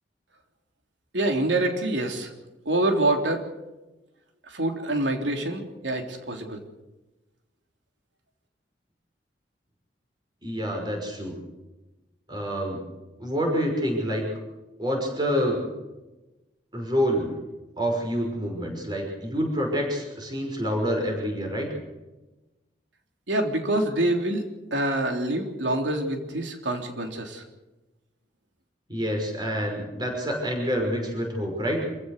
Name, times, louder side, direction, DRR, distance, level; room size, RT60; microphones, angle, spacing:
voice 1, 1.1-2.3 2.7-3.5 4.5-6.6 23.3-24.4 24.7-27.4, right 1 dB, 85° right, 4 dB, 3.4 m, -26 dB
voice 2, 10.4-11.3 12.3-12.8 13.2-14.2 14.8-15.6 16.7-17.3 17.8-21.7 28.9-31.8, equal, 25° right, 1 dB, 5.9 m, -27 dB
26.5 x 16.0 x 6.7 m, 1.1 s
head